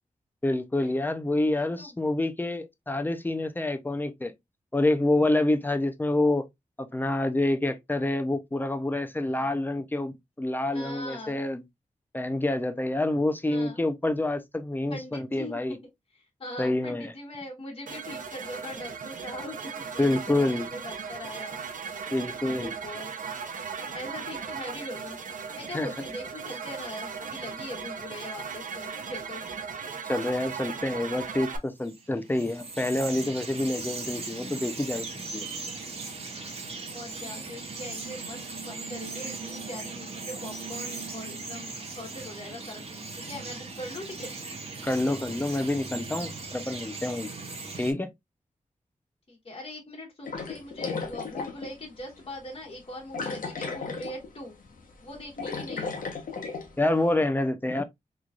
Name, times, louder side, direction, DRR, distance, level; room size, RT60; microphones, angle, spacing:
voice 1, 0.4-4.3 4.7-6.4 6.8-11.6 12.1-15.8 16.6-17.1 20.0-20.7 22.1-22.8 25.7-25.9 30.0-35.5 44.8-47.3 47.8-48.1 56.8-57.8, left 2 dB, 15° left, 0.6 m, -27 dB
voice 2, 10.7-11.4 13.4-13.8 14.9-15.8 16.4-21.6 22.5-23.1 23.9-25.2 25.6-29.7 36.9-44.3 49.3-54.5 55.0-55.9, left 1 dB, 40° left, 1.3 m, -41 dB
sound 1, 17.9-31.6, right 6 dB, 75° right, 0.8 m, -37 dB
Bird vocalization bird call bird song, 31.8-47.9, right 3 dB, 50° right, 1.0 m, -38 dB
sound 2, 50.2-51.7 52.2-52.3 53.1-54.3 54.6-54.8 55.1-56.7, left 4 dB, 85° left, 1.0 m, -34 dB
3.9 x 3.1 x 2.4 m
wide cardioid pair, 125°, 14 cm